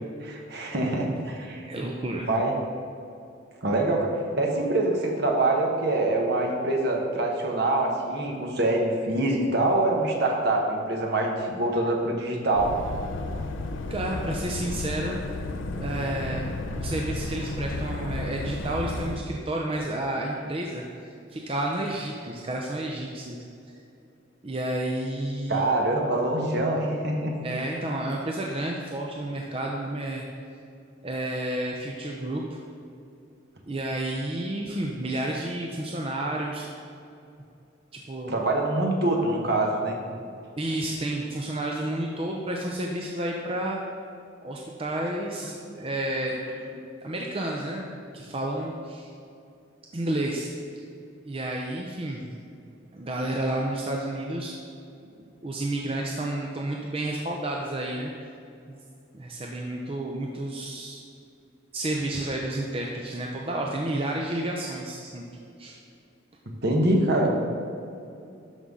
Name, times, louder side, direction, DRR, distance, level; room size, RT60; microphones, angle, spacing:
voice 1, 0.2-1.7 2.3-2.5 3.6-12.7 25.5-27.3 38.3-40.0 45.7-45.8 46.7-46.8 66.6-67.4, right 2 dB, 55° right, 0 dB, 1.3 m, -25 dB
voice 2, 1.7-2.3 13.9-15.2 15.8-23.5 24.4-25.6 27.4-30.2 31.0-32.4 33.7-36.7 37.9-38.3 40.6-43.8 44.4-46.4 47.0-49.1 49.9-50.5 51.2-52.3 52.9-54.6 55.4-58.1 58.7-58.8 59.1-61.0 61.7-65.2 65.6-65.8, right 1 dB, 30° right, -1 dB, 0.7 m, -31 dB
sound 1, 12.6-19.2, left 2 dB, 85° left, 0.6 m, -32 dB
12.5 x 5.5 x 3.8 m, 2.6 s
head